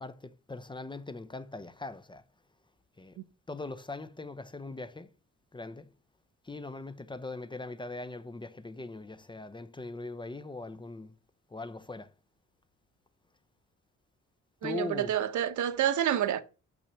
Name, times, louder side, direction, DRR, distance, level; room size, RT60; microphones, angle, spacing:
voice 1, 0.0-2.2 3.0-3.1 3.5-5.1 5.5-5.9 6.5-11.1 11.5-12.1 14.6-15.1, left 3 dB, 15° left, 0.8 m, -40 dB
voice 2, 14.6-16.4, right 10 dB, 75° right, 1.2 m, -28 dB
6.7 x 6.1 x 6.8 m
cardioid pair, 90°, 30 cm